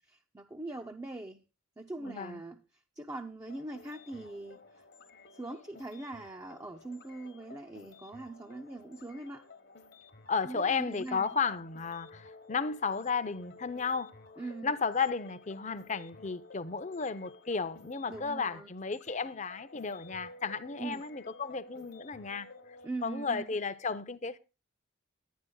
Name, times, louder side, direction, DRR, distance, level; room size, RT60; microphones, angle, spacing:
voice 1, 0.1-1.5 1.8-4.8 5.3-9.5 10.4-11.4 14.4-14.7 18.1-18.7 20.8-21.0 22.8-23.5, right 2 dB, 15° right, 0.5 m, -42 dB
voice 2, 2.0-2.4 10.3-14.1 14.6-22.5 23.0-24.4, left 5 dB, 35° left, 0.6 m, -33 dB
sound 1, 3.5-22.9, left 3 dB, 50° left, 1.0 m, -54 dB
11.5 x 9.6 x 3.8 m
head